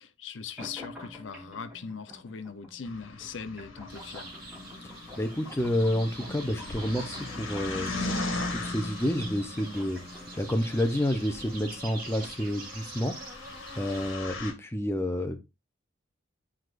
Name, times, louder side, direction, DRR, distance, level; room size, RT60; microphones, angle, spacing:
voice 1, 0.0-4.3, left 5 dB, 70° left, 0.7 m, -40 dB
sound 1, 0.6-12.6, left 2 dB, 5° right, 3.0 m, -49 dB
sound 2, 2.9-14.5, left 2 dB, 85° left, 1.4 m, -39 dB
sound 3, 3.9-14.1, right 3 dB, 45° right, 2.4 m, -45 dB
voice 2, 5.2-8.1 8.6-10.0 10.4-13.1 13.8-15.4, equal, 15° left, 0.7 m, -29 dB
9.9 x 4.6 x 2.5 m
head